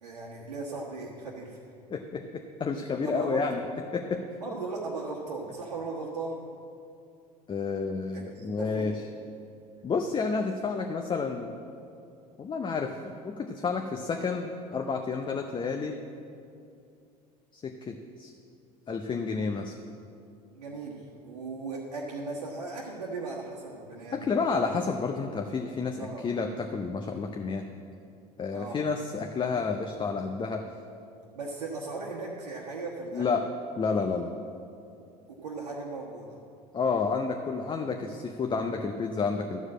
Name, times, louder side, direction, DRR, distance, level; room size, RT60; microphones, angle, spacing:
voice 1, 0.0-1.6 3.0-3.5 4.4-6.4 8.1-9.0 20.5-24.6 26.0-26.3 28.5-28.8 31.3-33.2 35.3-36.4, right 3 dB, 80° right, -4 dB, 1.2 m, -37 dB
voice 2, 1.9-3.6 3.9-4.2 7.5-8.9 9.8-11.5 12.4-16.0 17.5-18.3 18.9-19.7 24.1-27.7 28.4-30.7 33.1-33.4 33.8-34.4 36.7-39.6, left 4 dB, 25° left, 4 dB, 0.7 m, -30 dB
13.0 x 4.8 x 7.4 m, 2.5 s
hypercardioid pair, 70°, 20 cm